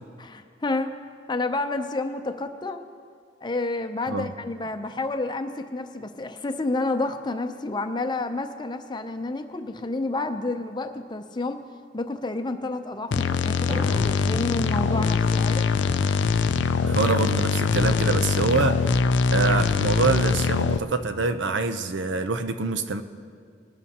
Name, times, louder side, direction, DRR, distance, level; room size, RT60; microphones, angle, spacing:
voice 1, 0.2-0.9 1.3-2.8 3.4-11.6 11.9-15.7, left 2 dB, 25° left, 8 dB, 0.6 m, -29 dB
sound 1, 13.1-20.8, left 5 dB, 80° left, 0.4 m, -23 dB
Drum, 13.7-15.8, equal, 45° right, 3.4 m, -39 dB
voice 2, 16.8-23.0, right 3 dB, 85° right, 9 dB, 0.7 m, -25 dB
21.0 x 12.5 x 2.9 m, 2.1 s
head